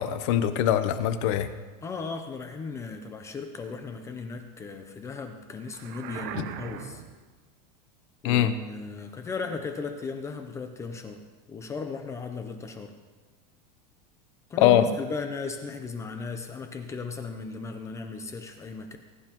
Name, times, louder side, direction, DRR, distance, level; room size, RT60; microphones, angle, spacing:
voice 1, 0.0-1.5 8.2-8.5 14.6-14.9, left 11 dB, 50° left, 11 dB, 0.8 m, -22 dB
voice 2, 1.8-7.0 8.2-11.2 11.5-12.9 14.5-19.0, left 4 dB, 15° left, 6 dB, 0.6 m, -36 dB
sound 1, 5.7-7.3, right 9 dB, 40° right, 0.7 m, -39 dB
20.0 x 10.0 x 3.0 m, 1.3 s
supercardioid pair, 165°, 21 cm